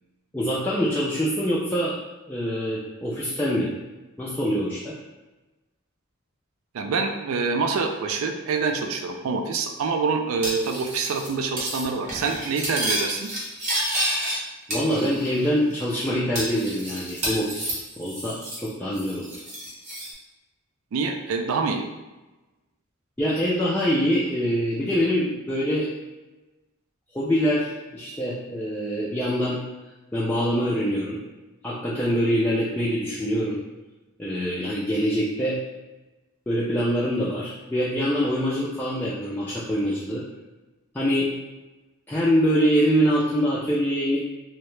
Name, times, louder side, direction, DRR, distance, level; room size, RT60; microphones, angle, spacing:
voice 1, 0.3-2.0 2.3-3.7 4.2-5.0 14.7-18.4 18.6-19.3 23.2-25.9 27.1-29.6 30.1-31.2 31.6-33.6 34.2-35.6 36.5-40.2 40.9-41.3 42.1-44.2, equal, 10° left, -8 dB, 0.3 m, -24 dB
voice 2, 6.7-13.3 20.9-21.9, right 4 dB, 70° right, 5 dB, 0.3 m, -26 dB
Cutlery silverware, 10.4-11.3 11.6-11.8 12.1-14.4 14.7-15.4 15.7-15.8 16.4-18.7 18.9-20.1, right 1 dB, 35° right, 0.7 m, -30 dB
2.7 x 2.1 x 3.1 m, 1.1 s
head